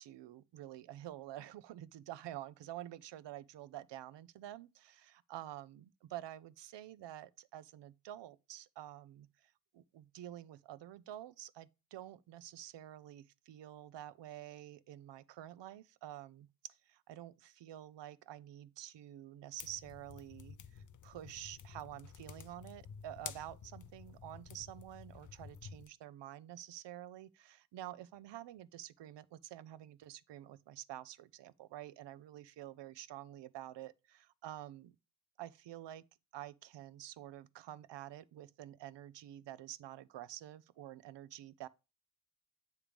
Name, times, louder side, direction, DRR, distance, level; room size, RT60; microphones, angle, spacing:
voice 1, 0.0-35.0 35.4-36.0 36.3-41.7, right 13 dB, 60° right, 0.5 m, -49 dB
sound 1, 19.6-25.9, left 7 dB, 40° left, 0.5 m, -51 dB
8.7 x 3.3 x 5.0 m
cardioid pair, 120°, 50 cm